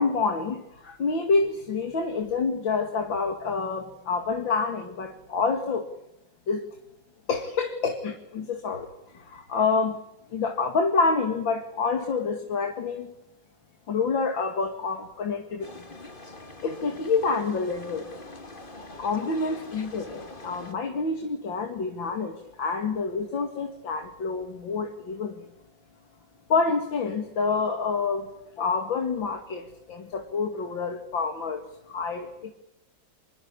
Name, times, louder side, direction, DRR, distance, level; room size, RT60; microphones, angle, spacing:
voice 1, 0.0-5.9 6.5-6.7 7.3-8.9 9.1-10.0 10.3-13.1 13.9-15.8 16.6-18.1 19.0-25.5 26.5-28.3 28.6-32.5, left 4 dB, 80° left, 5 dB, 3.1 m, -27 dB
sound 1, 15.6-20.7, left 2 dB, 25° left, 2.4 m, -43 dB
26.5 x 21.0 x 8.6 m, 0.85 s
omnidirectional pair, 2.1 m